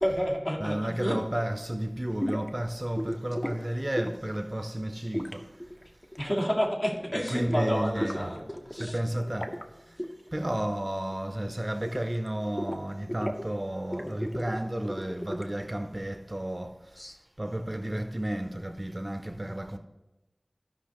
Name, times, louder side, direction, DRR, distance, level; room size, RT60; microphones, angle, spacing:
voice 1, 0.0-1.2 6.2-8.4 8.7-8.9 17.0-17.1, equal, 45° left, 1.9 m, -29 dB
voice 2, 0.6-5.6 7.3-8.4 8.7-9.6 9.9-10.0 10.3-16.7 17.4-19.8, right 1 dB, 35° right, 0.6 m, -32 dB
sound 1, 2.2-2.5 3.0-3.6 4.0-4.3 5.1-6.6 6.9-7.1 7.4-8.9 9.2-9.6 10.0-10.1 10.4-10.9 11.1-12.3 12.6-13.5 13.8-15.7, equal, 25° left, 0.8 m, -35 dB
14.0 x 5.4 x 2.9 m
wide cardioid pair, 40°, 0 cm